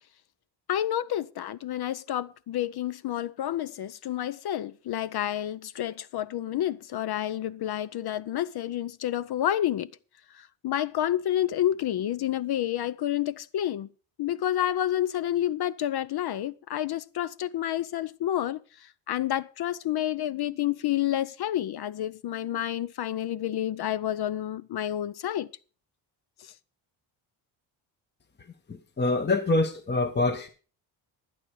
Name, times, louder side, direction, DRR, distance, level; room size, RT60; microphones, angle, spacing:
voice 1, 0.7-9.9 10.6-13.9 14.2-18.6 19.1-25.5, left 12 dB, 55° left, 0.6 m, -29 dB
voice 2, 28.7-30.5, left 2 dB, 20° left, 1.0 m, -25 dB
12.0 x 10.0 x 4.7 m
cardioid pair, 80°, 47 cm